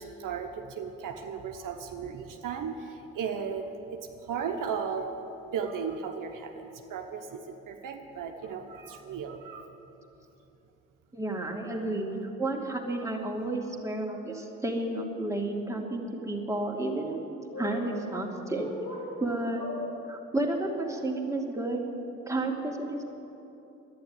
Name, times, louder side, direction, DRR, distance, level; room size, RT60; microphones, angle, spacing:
voice 1, 0.0-5.2 5.4-9.7, right 6 dB, 70° right, 4 dB, 1.0 m, -36 dB
voice 2, 11.1-17.2 17.6-18.7 19.2-19.6 20.1-21.8 22.3-23.0, right 2 dB, 10° right, -1 dB, 2.5 m, -31 dB
sound 1, 17.5-17.8 18.5-19.0 19.6-19.8 20.7-21.1, left 3 dB, 65° left, 4.2 m, -39 dB
11.0 x 9.8 x 9.6 m, 3.0 s
hypercardioid pair, 50°, 34 cm